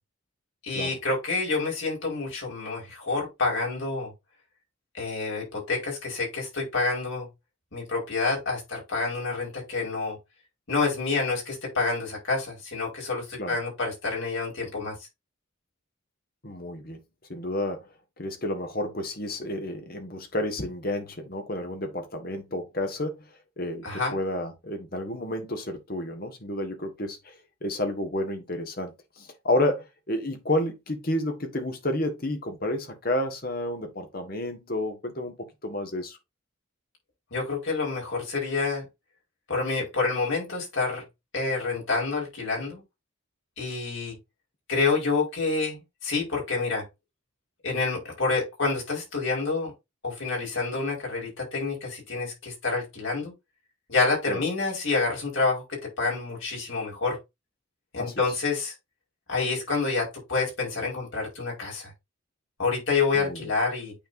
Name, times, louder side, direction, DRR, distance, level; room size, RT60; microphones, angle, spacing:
voice 1, 0.6-4.1 4.9-7.3 7.7-10.2 10.7-15.0 23.8-24.2 37.3-38.9 39.5-41.0 41.3-42.8 43.6-44.1 44.7-46.8 47.6-49.7 50.0-53.3 53.9-57.2 57.9-58.7 59.3-61.9 62.6-63.9, left 3 dB, 75° left, 5.0 m, -28 dB
voice 2, 16.4-17.0 17.3-17.9 18.2-23.2 23.6-35.3 35.6-36.2 54.3-54.4 58.0-58.2 63.1-63.5, left 1 dB, 50° left, 1.7 m, -30 dB
8.9 x 4.6 x 2.7 m
head